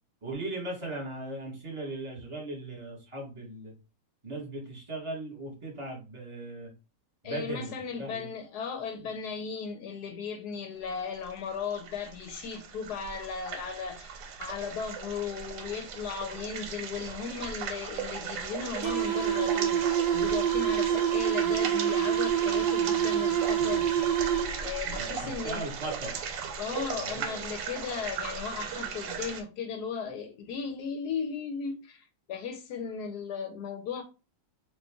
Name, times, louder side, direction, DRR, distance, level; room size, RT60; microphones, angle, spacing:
voice 1, 0.2-3.7 4.2-6.7 7.2-8.3 24.9-26.2 26.8-27.2, right 2 dB, 20° right, 1.1 m, -38 dB
voice 2, 7.2-19.8 20.1-23.9 24.6-25.7 26.6-34.0, left 6 dB, 75° left, 1.0 m, -36 dB
sound 1, 11.2-29.4, right 6 dB, 85° right, 1.3 m, -38 dB
sound 2, 18.8-24.8, right 9 dB, 60° right, 1.0 m, -26 dB
3.1 x 2.5 x 3.4 m
omnidirectional pair, 1.9 m